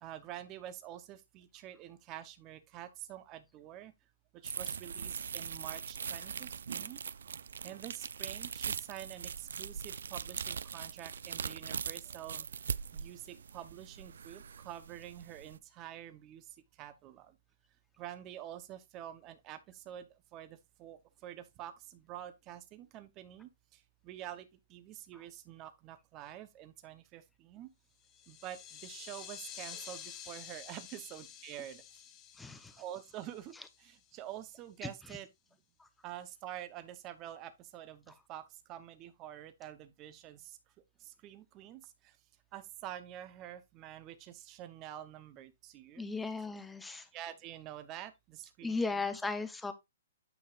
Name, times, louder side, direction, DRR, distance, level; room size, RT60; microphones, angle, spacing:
voice 1, 0.0-3.9 4.3-7.0 7.6-12.5 12.9-17.4 18.0-27.7 28.3-31.8 32.8-35.3 36.0-40.6 41.0-42.2 42.5-46.1 47.1-49.2, right 12 dB, 25° right, 0.8 m, -47 dB
sound 1, 4.4-15.6, right 7 dB, 75° right, 0.4 m, -41 dB
sound 2, 28.0-34.1, left 9 dB, 25° left, 1.1 m, -50 dB
voice 2, 32.4-32.8 34.8-34.9 35.8-35.9 46.0-47.1 48.6-49.7, left 3 dB, 5° left, 0.8 m, -36 dB
9.1 x 5.6 x 2.5 m
hypercardioid pair, 150°, 0 cm